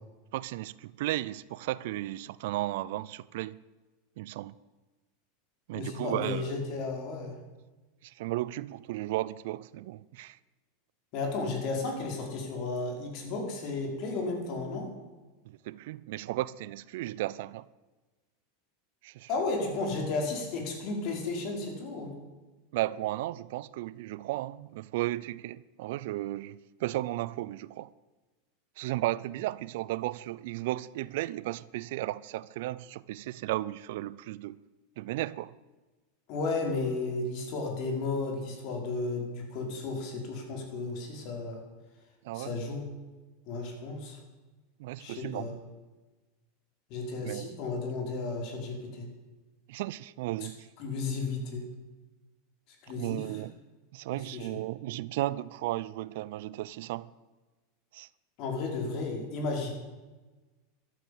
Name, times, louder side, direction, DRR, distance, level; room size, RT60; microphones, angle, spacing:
voice 1, 0.3-3.6 4.2-4.5 5.7-6.6 8.0-10.4 15.5-17.6 19.0-19.3 22.7-27.9 28.8-34.6 35.0-35.5 42.2-42.5 44.8-45.5 47.2-47.6 49.7-50.7 53.0-53.6 53.9-57.1 57.9-58.1, right 16 dB, 70° right, 0.5 m, -34 dB
voice 2, 5.7-7.4 11.1-14.9 19.3-22.1 36.3-41.6 42.3-42.9 43.4-44.2 45.0-45.5 46.9-49.1 50.8-51.7 52.8-53.3 54.3-54.5 58.4-59.7, left 3 dB, 55° left, 5.3 m, -33 dB
13.0 x 12.0 x 8.8 m
hypercardioid pair, 100°, 0 cm